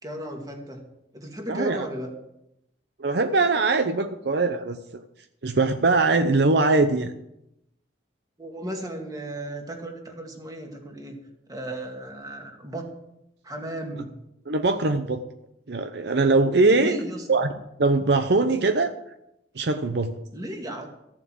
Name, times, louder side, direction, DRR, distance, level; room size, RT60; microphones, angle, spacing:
voice 1, 0.0-0.8 1.1-2.1 8.4-11.2 11.5-13.0 13.4-14.1 16.8-17.3 20.3-20.9, right 1 dB, 20° right, 2 dB, 2.2 m, -35 dB
voice 2, 1.5-1.9 3.0-5.0 5.4-7.1 14.5-15.2 15.7-17.0 17.3-17.5 17.8-18.9 19.5-20.1, right 3 dB, 65° right, 8 dB, 0.7 m, -22 dB
14.0 x 7.4 x 7.6 m, 0.84 s
head